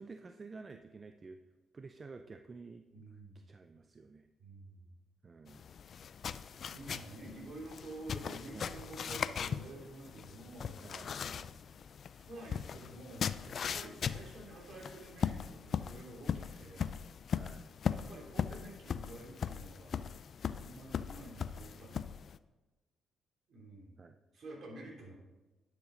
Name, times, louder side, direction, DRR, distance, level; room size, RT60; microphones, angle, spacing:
voice 1, 0.0-1.4 1.7-3.0 3.3-4.3 5.2-5.6 8.5-8.8 10.8-11.6 14.0-14.3 17.4-17.7 20.5-20.9 24.0-24.2, right 4 dB, 35° right, 7 dB, 0.4 m, -51 dB
voice 2, 2.9-3.5 4.4-4.9 6.7-10.8 12.2-16.9 17.2-17.4 17.9-20.0 20.6-22.1 23.5-24.0 24.3-25.2, right 2 dB, 55° right, -2 dB, 3.2 m, -50 dB
sound 1, 5.5-22.4, left 7 dB, 55° left, 0.3 m, -39 dB
10.5 x 6.3 x 3.8 m, 1.2 s
cardioid pair, 90°, 0 cm